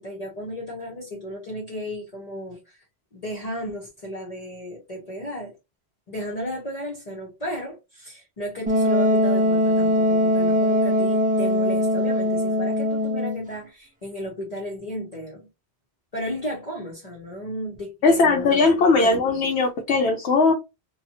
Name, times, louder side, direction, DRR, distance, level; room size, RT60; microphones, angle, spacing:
voice 1, 0.0-2.8 3.1-5.5 6.1-15.5 16.1-18.6 18.9-19.2, equal, 40° left, 0.8 m, -34 dB
Wind instrument woodwind instrument, 8.7-13.5, equal, 15° right, 0.3 m, -21 dB
voice 2, 18.0-20.5, left 3 dB, 85° left, 0.9 m, -19 dB
2.6 x 2.3 x 2.7 m
omnidirectional pair, 1.1 m